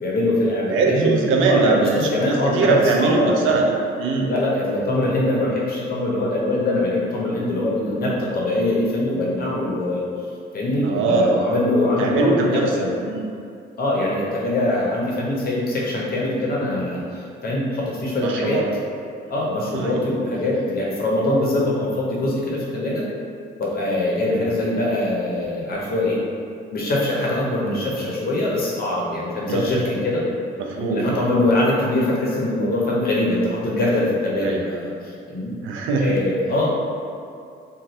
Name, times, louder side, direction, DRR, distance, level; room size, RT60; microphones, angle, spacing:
voice 1, 0.0-1.2 1.5-3.5 4.2-10.0 10.5-12.9 13.8-18.6 19.3-23.0 23.6-26.2 26.7-30.2 30.7-35.5 36.0-36.7, left 1 dB, 50° left, -4 dB, 0.7 m, -23 dB
voice 2, 0.7-3.7 4.0-4.3 10.8-11.5 12.0-12.7 13.0-13.3 18.2-18.6 19.7-20.0 24.2-24.5 29.5-29.6 30.6-31.5 34.4-34.6 35.6-36.2, right 4 dB, 80° right, 0 dB, 0.4 m, -21 dB
2.6 x 2.3 x 3.1 m, 2.4 s
cardioid pair, 90°, 20 cm